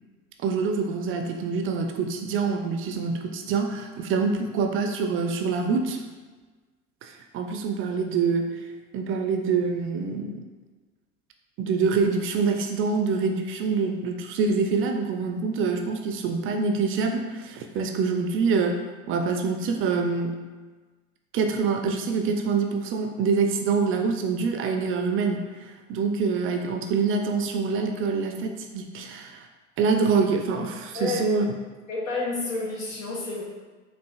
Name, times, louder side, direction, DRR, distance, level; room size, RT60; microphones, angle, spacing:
voice 1, 0.4-6.0 7.0-8.5 8.9-10.4 11.6-20.3 21.3-29.5 29.8-31.5, right 4 dB, 35° right, 4 dB, 0.4 m, -25 dB
voice 2, 31.9-33.4, left 3 dB, 85° left, -4 dB, 1.1 m, -29 dB
5.7 x 2.4 x 2.3 m, 1.3 s
hypercardioid pair, 75°, 39 cm